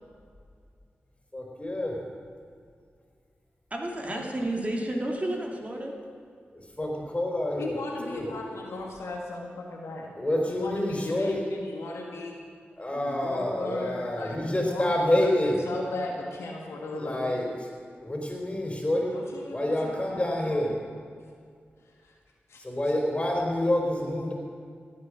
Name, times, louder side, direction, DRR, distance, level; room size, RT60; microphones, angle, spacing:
voice 1, 1.3-2.0 6.8-7.7 8.0-8.3 10.2-11.5 12.8-15.6 17.0-17.5 18.0-19.2 19.5-20.7 22.6-24.3, left 1 dB, 25° left, 0 dB, 4.2 m, -27 dB
voice 2, 3.7-5.9, right 1 dB, 30° right, 0 dB, 2.4 m, -31 dB
voice 3, 7.6-10.1 10.5-12.4 12.9-17.4 19.1-20.2 20.5-20.8 21.9-22.2 22.5-22.6, left 2 dB, 85° left, -1 dB, 1.8 m, -37 dB
16.0 x 8.5 x 6.3 m, 2.2 s
cardioid pair, 45°, 5 cm